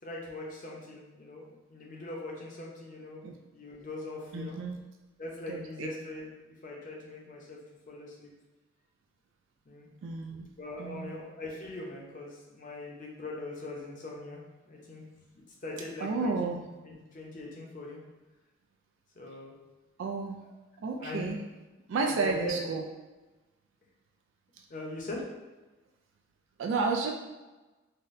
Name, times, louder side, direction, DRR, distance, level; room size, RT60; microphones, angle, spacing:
voice 1, 0.0-3.3 3.5-4.6 5.2-6.3 6.6-7.6 7.9-8.3 9.7-9.9 10.6-14.4 14.7-15.0 15.6-16.6 16.9-18.0 19.2-19.6 21.0-21.3 22.1-22.6 24.7-25.2, left 2 dB, 40° left, -2 dB, 0.6 m, -41 dB
voice 2, 4.3-4.8 5.5-5.9 10.0-10.5 10.8-11.2 16.0-16.7 20.0-20.4 20.8-21.4 21.9-22.8 26.6-27.1, right 4 dB, 65° right, 2 dB, 0.3 m, -31 dB
3.9 x 2.1 x 2.5 m, 1.2 s
head